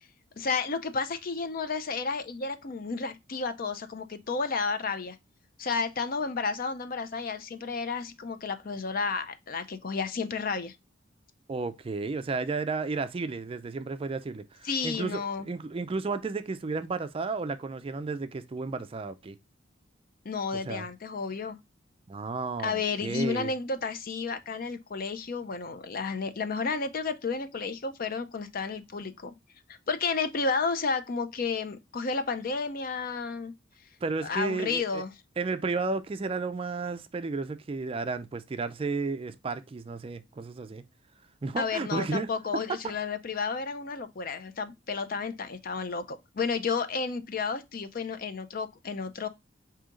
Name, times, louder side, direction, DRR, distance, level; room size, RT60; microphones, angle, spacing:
voice 1, 0.4-5.2 5.6-10.7 14.6-15.5 20.2-21.6 22.6-29.3 29.9-33.5 34.2-35.1 41.6-49.3, left 4 dB, 50° left, 0.5 m, -32 dB
voice 2, 11.5-19.4 20.6-20.9 22.1-23.5 34.0-35.0 35.4-40.8 41.4-42.3 42.8-43.0, right 4 dB, 30° right, 0.3 m, -33 dB
4.9 x 2.8 x 3.7 m
head